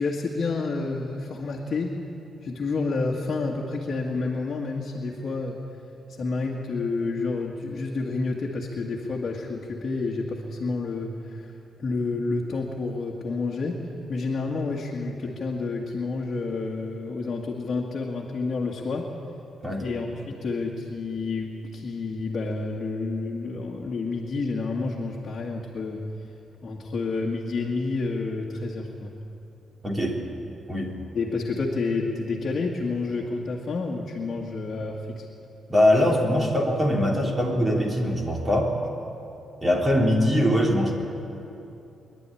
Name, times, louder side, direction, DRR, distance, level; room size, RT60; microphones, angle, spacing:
voice 1, 0.0-2.0 2.4-5.6 6.2-11.5 11.8-13.8 14.1-19.1 19.8-26.0 26.6-29.1 31.1-35.3, left 3 dB, 40° left, -3 dB, 1.9 m, -29 dB
voice 2, 29.8-30.2 30.7-31.0 34.3-34.4 35.7-38.7 39.6-40.9, left 1 dB, 20° right, -1 dB, 3.2 m, -22 dB
23.0 x 11.5 x 10.0 m, 2.8 s
cardioid pair, 140°, 0 cm